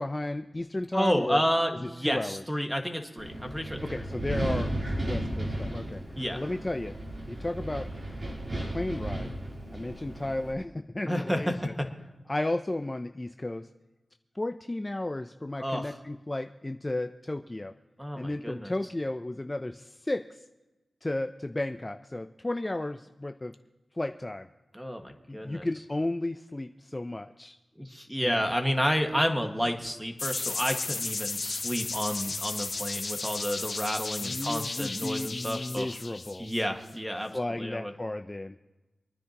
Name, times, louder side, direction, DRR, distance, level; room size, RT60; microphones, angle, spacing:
voice 1, 0.0-1.4 1.8-2.4 3.8-4.7 5.0-7.0 7.3-7.9 8.7-9.3 9.7-11.7 12.3-13.7 14.3-17.7 18.1-20.3 21.0-23.5 24.0-24.5 25.3-27.6 28.2-28.5 34.1-36.5 37.3-38.5, left 1 dB, 25° left, 7 dB, 0.5 m, -33 dB
voice 2, 0.9-3.8 6.2-6.4 11.1-11.9 15.6-16.0 18.0-18.7 24.7-25.7 27.8-35.9 36.4-37.9, equal, 5° right, 4 dB, 1.7 m, -30 dB
Wind, 3.2-10.5, right 1 dB, 50° right, 3.5 m, -34 dB
sound 1, 30.2-36.9, left 3 dB, 60° left, 1.4 m, -34 dB
26.0 x 9.8 x 3.0 m, 1.1 s
cardioid pair, 50°, 0 cm